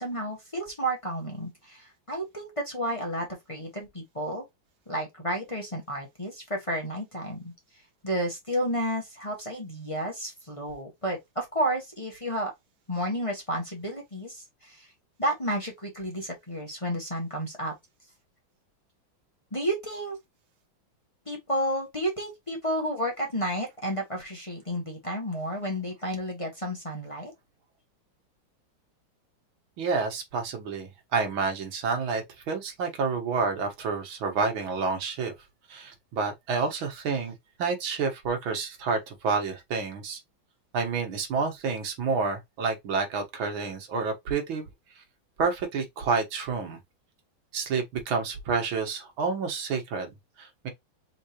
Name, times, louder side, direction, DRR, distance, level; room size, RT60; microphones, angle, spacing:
voice 1, 0.0-4.4 4.9-7.5 8.0-12.5 12.9-14.9 15.2-17.7 19.5-20.2 21.3-27.3, equal, 20° left, 1.4 m, -31 dB
voice 2, 29.8-35.3 35.7-40.2 40.7-44.7 45.4-46.8 47.5-50.7, right 4 dB, 85° right, 2.2 m, -29 dB
4.4 x 3.8 x 2.9 m
omnidirectional pair, 2.1 m